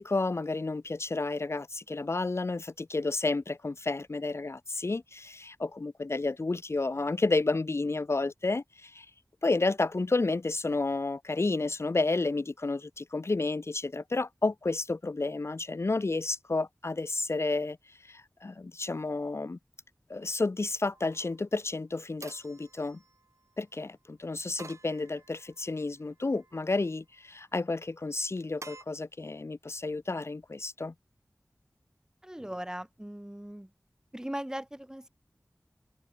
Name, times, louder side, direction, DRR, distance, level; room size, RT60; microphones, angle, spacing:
voice 1, 0.0-9.1 9.4-17.8 18.1-19.6 20.1-23.0 23.6-30.9, left 3 dB, 50° left, 0.6 m, -31 dB
sound 1, 20.9-21.4 22.2-23.6 24.6-25.7 26.2-26.9 28.6-28.8, right 3 dB, 60° right, 1.2 m, -50 dB
voice 2, 32.2-33.7 34.1-35.1, right 1 dB, 10° right, 0.7 m, -39 dB
wide cardioid pair, 65°, 6 cm